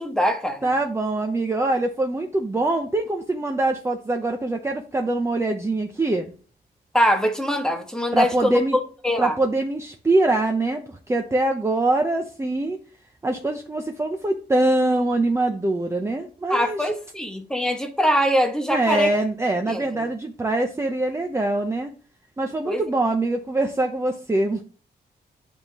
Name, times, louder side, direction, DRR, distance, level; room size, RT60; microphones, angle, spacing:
voice 1, 0.0-0.7 6.9-8.6 9.0-9.3 16.5-19.1 19.6-20.0 22.6-22.8, equal, 5° left, 1.3 m, -23 dB
voice 2, 0.6-6.3 8.1-8.8 9.2-12.8 13.2-16.9 18.7-21.9 22.4-24.6, right 2 dB, 15° right, 0.7 m, -23 dB
10.0 x 3.6 x 3.0 m
cardioid pair, 100°, 17 cm